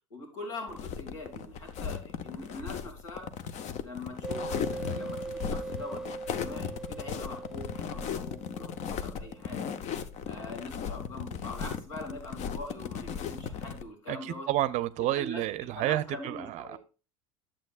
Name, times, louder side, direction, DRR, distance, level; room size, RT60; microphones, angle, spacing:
voice 1, 0.1-3.3 3.8-9.7 10.3-14.5 15.1-15.4 15.7-16.8, left 2 dB, 75° left, 2.7 m, -43 dB
sound 1, 0.7-13.8, left 7 dB, 45° left, 0.8 m, -36 dB
sound 2, 4.2-9.6, right 3 dB, 5° right, 0.3 m, -41 dB
voice 2, 14.1-16.8, right 14 dB, 45° right, 0.6 m, -30 dB
11.0 x 7.5 x 2.4 m
figure-of-eight pair, 75°, 16 cm